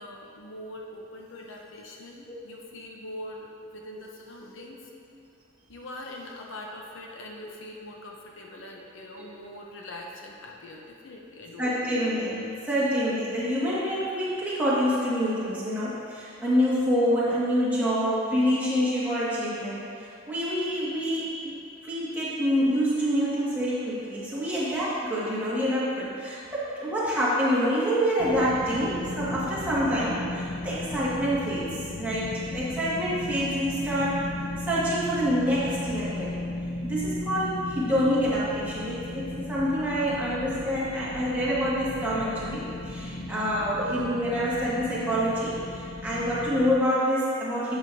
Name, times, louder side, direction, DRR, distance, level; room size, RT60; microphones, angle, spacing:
voice 1, 0.0-4.9 5.7-11.7, left 1 dB, 65° left, -1 dB, 0.8 m, -42 dB
voice 2, 11.6-34.3 34.7-36.4 36.8-47.8, equal, 10° right, -10 dB, 1.9 m, -27 dB
sound 1, 28.2-46.8, left 2 dB, 45° left, 0.4 m, -36 dB
11.0 x 8.0 x 2.7 m, 2.5 s
head